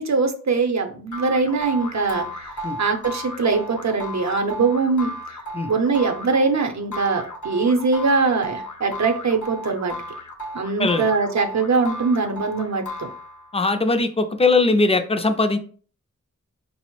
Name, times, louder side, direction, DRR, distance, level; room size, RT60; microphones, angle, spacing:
voice 1, 0.0-2.5 2.8-5.1 5.7-9.9 10.5-13.1, right 4 dB, 65° right, 5 dB, 0.6 m, -22 dB
sound 1, 1.1-13.6, equal, 75° left, 0.7 m, -35 dB
voice 2, 13.5-15.6, left 3 dB, 20° left, 7 dB, 0.4 m, -20 dB
4.1 x 2.0 x 3.0 m, 0.43 s
wide cardioid pair, 65°, 30 cm